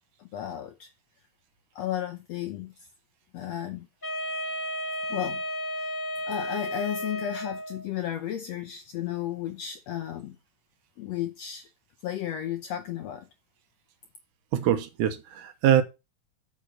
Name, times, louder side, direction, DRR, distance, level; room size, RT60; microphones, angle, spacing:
voice 1, 0.2-0.9 1.8-2.7 3.3-3.9 5.1-5.4 5.7-5.9 6.3-10.4 11.0-11.7 12.0-13.3, left 11 dB, 75° left, 1.6 m, -33 dB
Wind instrument woodwind instrument, 4.0-7.9, equal, 15° left, 2.2 m, -33 dB
voice 2, 14.5-15.8, right 10 dB, 70° right, 2.4 m, -23 dB
8.6 x 6.1 x 6.2 m
omnidirectional pair, 3.9 m